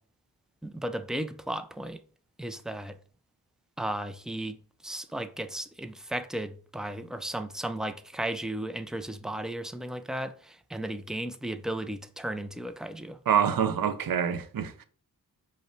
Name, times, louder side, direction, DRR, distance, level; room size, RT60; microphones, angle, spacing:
voice 1, 0.6-2.0 2.4-3.0 3.8-4.6 4.8-13.2, right 1 dB, ahead, 0.3 m, -35 dB
voice 2, 13.3-14.8, right 8 dB, 65° right, 0.5 m, -26 dB
5.4 x 2.1 x 4.4 m
wide cardioid pair, 70°, 38 cm